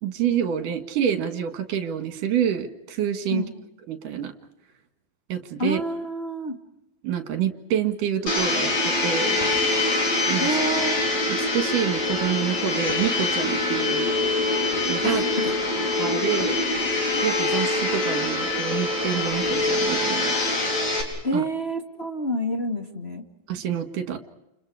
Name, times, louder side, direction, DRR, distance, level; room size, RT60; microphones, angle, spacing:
voice 1, 0.0-3.4 3.9-4.3 5.3-5.8 7.0-9.4 10.3-10.5 11.3-14.1 14.9-15.2 16.0-16.6 17.2-20.3 21.3-21.4 23.5-24.2, right 9 dB, 60° right, 7 dB, 3.3 m, -27 dB
voice 2, 5.6-6.6 10.4-11.0 15.0-15.5 21.2-23.2, right 1 dB, 25° left, 3 dB, 1.5 m, -28 dB
Domestic sounds home sounds, 8.3-21.0, left 2 dB, 45° left, 5.5 m, -24 dB
29.5 x 29.0 x 4.9 m, 0.89 s
omnidirectional pair, 4.4 m